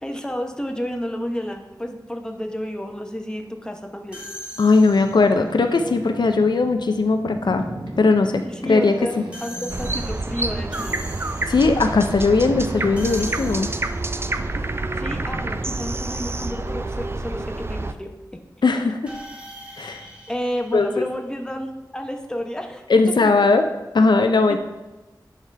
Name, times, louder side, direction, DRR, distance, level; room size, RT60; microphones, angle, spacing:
voice 1, 0.0-4.2 8.4-11.0 15.0-18.1 18.7-18.8 20.3-22.8 24.5-24.6, equal, 10° left, 4 dB, 0.8 m, -31 dB
sound 1, 4.1-5.4 9.3-11.8 13.0-14.2 19.1-21.6, equal, 15° right, 1.8 m, -41 dB
voice 2, 4.6-7.7 8.0-9.1 11.5-13.7 18.6-19.1 19.8-20.0 20.7-21.1 22.9-23.7 23.9-24.6, left 3 dB, 75° left, 6 dB, 0.5 m, -18 dB
Boat Water vehicle, 4.8-15.6, right 2 dB, 90° right, 0.9 m, -38 dB
sound 2, 9.7-17.9, right 2 dB, 30° right, 0.4 m, -28 dB
10.5 x 4.9 x 3.3 m, 1.1 s
wide cardioid pair, 60°, 8 cm